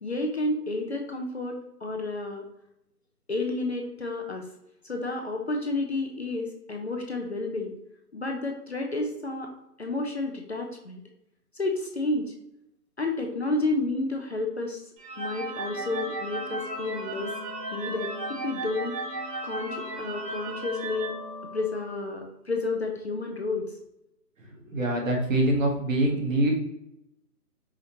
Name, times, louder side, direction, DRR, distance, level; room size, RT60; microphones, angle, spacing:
voice 1, 0.0-2.4 3.3-4.5 4.8-7.7 8.1-9.5 9.8-11.0 11.5-12.3 13.0-14.8 15.2-17.3 17.7-18.9 19.4-21.2 21.5-23.8, left 2 dB, 45° left, 2 dB, 0.5 m, -31 dB
sound 1, 15.0-22.0, right 1 dB, 75° right, 1.4 m, -35 dB
voice 2, 24.6-26.5, right 1 dB, 55° right, 0 dB, 1.1 m, -24 dB
5.0 x 2.8 x 2.7 m, 0.83 s
hypercardioid pair, 165°, 48 cm